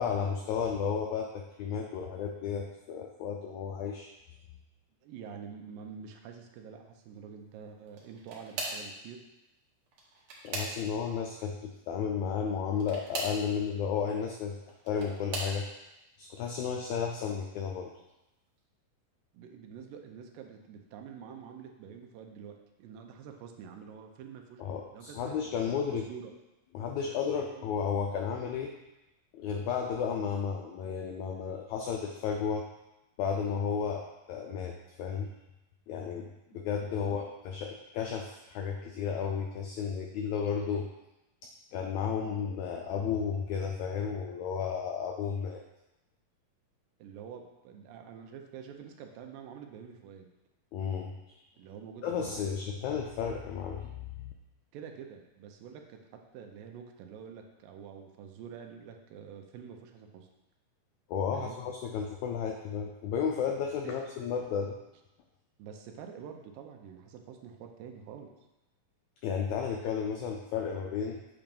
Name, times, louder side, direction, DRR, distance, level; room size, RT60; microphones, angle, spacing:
voice 1, 0.0-4.1 10.4-14.6 14.8-15.6 16.2-17.9 24.6-26.1 26.7-28.7 29.3-32.6 33.2-35.3 35.9-36.3 36.5-40.9 41.7-45.6 50.7-51.4 52.0-54.3 61.1-64.8 69.2-71.2, left 6 dB, 90° left, 2 dB, 1.6 m, -33 dB
voice 2, 5.0-9.2 19.3-24.6 24.9-25.4 25.6-26.3 27.5-27.6 36.5-36.6 37.0-37.2 47.0-50.3 51.6-52.5 54.7-60.3 61.3-61.6 63.8-63.9 65.6-68.3, right 7 dB, 85° right, 4 dB, 2.5 m, -47 dB
sound 1, 7.9-8.9 9.9-11.1 12.7-13.4 14.5-15.6 16.3-16.7 17.1-17.2 18.6-18.7, right 2 dB, 70° right, 2.7 m, -39 dB
8.6 x 2.9 x 5.3 m, 0.96 s
omnidirectional pair, 4.0 m